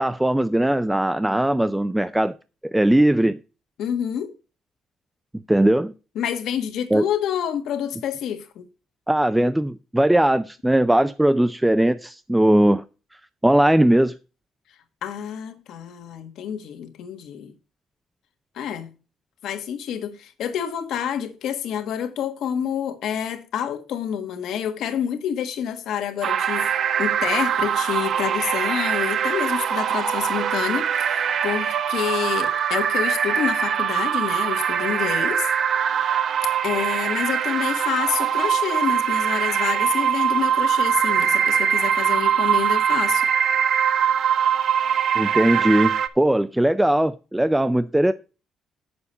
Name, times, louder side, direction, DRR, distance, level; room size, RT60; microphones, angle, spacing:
voice 1, 0.0-2.3 2.7-3.4 5.5-5.9 6.9-7.1 9.1-12.8 13.4-14.1 45.2-48.1, right 1 dB, 5° right, 0.4 m, -19 dB
voice 2, 3.8-4.3 6.1-8.7 15.0-17.5 18.5-18.9 19.4-26.7 27.0-35.5 36.6-43.2, left 9 dB, 75° left, 1.5 m, -28 dB
sound 1, 26.2-46.1, right 8 dB, 50° right, 0.7 m, -22 dB
8.4 x 6.9 x 5.5 m
cardioid pair, 145°, 0 cm